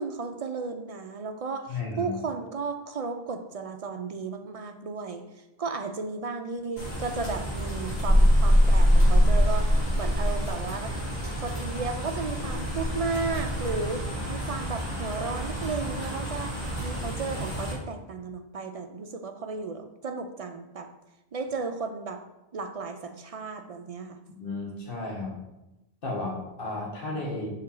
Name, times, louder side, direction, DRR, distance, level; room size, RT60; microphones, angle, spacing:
voice 1, 0.0-9.7 10.0-11.0 11.4-16.6 16.8-20.9 21.3-22.2 22.5-24.2, right 4 dB, 55° right, 6 dB, 0.4 m, -34 dB
voice 2, 1.7-2.1 24.3-25.4 26.0-27.5, left 2 dB, 60° left, -1 dB, 1.5 m, -33 dB
sound 1, 6.8-17.7, equal, 80° left, 2.7 m, -25 dB
6.3 x 4.3 x 3.7 m, 0.94 s
omnidirectional pair, 1.0 m